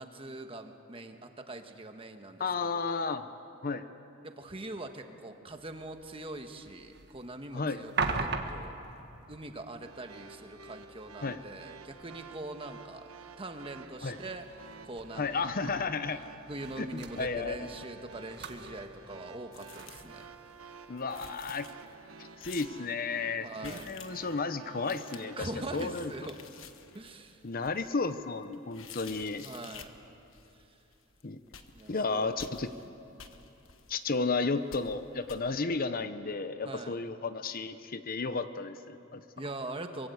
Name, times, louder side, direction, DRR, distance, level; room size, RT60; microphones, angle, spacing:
voice 1, 0.0-2.5 2.7-2.9 4.2-7.9 8.2-8.8 9.3-13.0 13.4-14.4 14.8-15.5 16.5-20.2 23.4-24.0 25.4-26.4 26.9-27.4 29.4-30.0 30.5-30.7 31.7-32.4 36.6-37.0 39.4-40.1, right 2 dB, 25° right, 6 dB, 1.4 m, -42 dB
voice 2, 2.4-3.2 3.6-3.8 7.5-7.8 11.2-11.4 14.0-14.2 15.2-16.2 16.8-17.5 20.9-21.7 22.2-26.1 27.4-29.4 31.2-31.4 31.9-32.7 33.9-39.2, left 4 dB, 40° left, 11 dB, 0.7 m, -33 dB
sound 1, 5.5-20.8, right 4 dB, 50° right, 1.5 m, -42 dB
sound 2, 9.8-25.8, right 4 dB, 75° right, 1.2 m, -51 dB
sound 3, 19.5-20.3 20.6-20.7 20.9-22.0 22.4-22.9 23.6-24.4 24.7-30.0 30.3-30.6 30.9-31.2 31.5-32.9 33.2-34.4 34.7-35.0 35.3-35.4, left 7 dB, 65° left, 1.3 m, -51 dB
24.0 x 22.5 x 8.1 m, 2.9 s
head